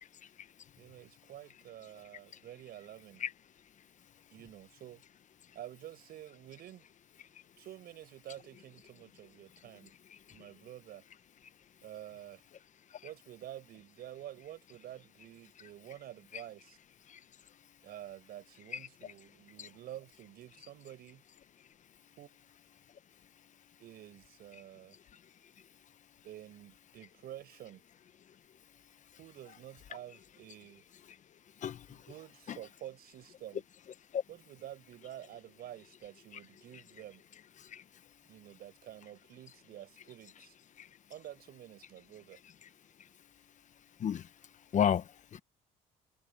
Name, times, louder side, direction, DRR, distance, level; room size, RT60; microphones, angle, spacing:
voice 1, 0.8-3.2 4.3-5.0 5.5-6.9 7.6-9.9 10.3-11.0 11.8-12.4 13.0-16.8 17.8-21.2 22.2-22.5 23.8-25.0 26.2-27.8 29.2-30.8 31.9-33.6 34.3-37.2 38.3-40.6 41.1-42.4, right 12 dB, 65° right, 5.7 m, -49 dB
voice 2, 10.1-10.5 12.9-13.0 16.3-16.4 17.1-17.2 18.7-19.1 19.6-19.7 25.1-25.2 31.6-32.1 32.5-32.6 34.1-34.2 37.6-37.8 40.8-40.9 43.0-43.1 44.0-44.3 44.7-45.4, left 9 dB, 45° left, 1.0 m, -34 dB
cardioid pair, 110°, 17 cm